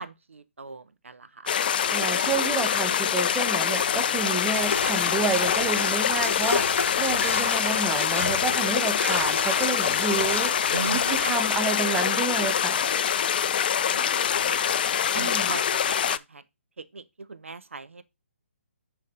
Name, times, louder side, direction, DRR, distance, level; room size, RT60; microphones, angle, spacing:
voice 1, 0.0-1.5 10.7-11.3 13.9-14.8 15.1-16.4 16.9-18.0, right 4 dB, 70° right, 0.6 m, -38 dB
sound 1, 1.5-16.2, left 8 dB, 45° left, 0.3 m, -25 dB
voice 2, 1.9-12.8 15.2-15.5, right 5 dB, 10° right, 0.7 m, -30 dB
sound 2, 3.8-12.8, right 3 dB, 50° right, 2.1 m, -48 dB
sound 3, 4.5-11.4, left 4 dB, 65° left, 0.8 m, -32 dB
8.3 x 3.5 x 3.8 m
figure-of-eight pair, 135°, 7 cm